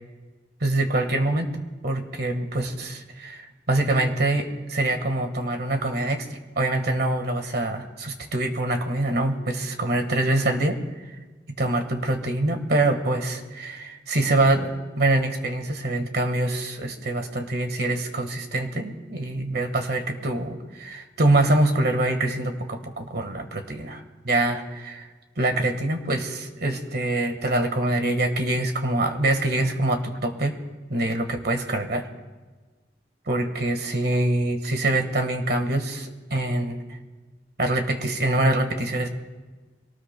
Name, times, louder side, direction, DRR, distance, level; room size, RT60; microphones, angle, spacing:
voice 1, 0.6-6.3 6.5-11.1 11.5-25.1 25.4-30.6 30.9-32.1 33.3-37.0 37.6-39.1, right 2 dB, 60° right, 6 dB, 1.5 m, -25 dB
23.5 x 18.5 x 2.2 m, 1.3 s
head